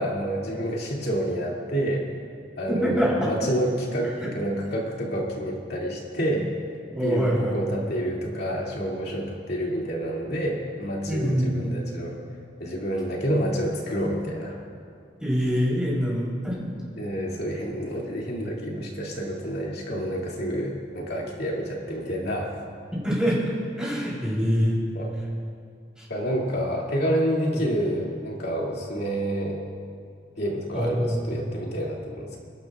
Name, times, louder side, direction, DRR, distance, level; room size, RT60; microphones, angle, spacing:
voice 1, 0.0-2.1 2.6-6.5 7.0-12.2 12.6-14.6 17.0-22.5 24.9-25.1 26.1-29.6 30.4-32.4, equal, 60° left, -3 dB, 2.6 m, -28 dB
voice 2, 2.7-3.3 4.2-4.3 6.9-7.5 11.1-11.8 15.2-16.6 22.9-23.4 23.8-24.8 30.7-31.2, equal, 5° right, -6 dB, 3.8 m, -24 dB
27.0 x 12.0 x 2.5 m, 2.2 s
head